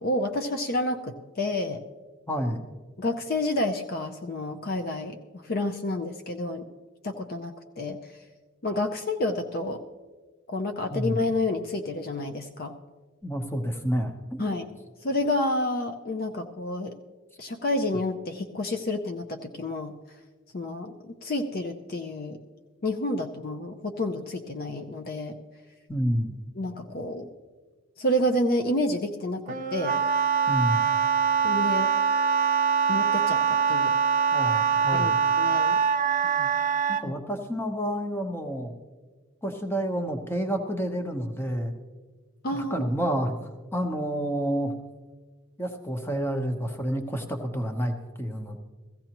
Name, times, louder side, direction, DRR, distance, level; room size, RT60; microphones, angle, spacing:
voice 1, 0.0-1.8 3.0-5.2 5.4-6.6 7.0-8.0 8.6-9.8 10.5-12.7 14.4-14.7 15.0-16.9 17.4-19.9 20.5-22.4 22.8-25.4 26.6-27.3 28.0-30.0 31.4-31.9 32.9-33.9 34.9-35.1 35.4-35.8 42.4-42.9, left 1 dB, 50° left, 7 dB, 0.6 m, -29 dB
voice 2, 2.3-2.6 10.9-11.2 13.2-14.5 25.9-26.4 30.5-30.9 34.3-35.2 36.2-36.5 36.9-38.7 39.4-41.7 42.5-44.7 45.6-48.6, equal, 10° left, 5 dB, 0.9 m, -29 dB
Wind instrument woodwind instrument, 29.5-37.0, right 6 dB, 40° right, 0.6 m, -23 dB
16.5 x 15.0 x 3.0 m, 1.4 s
head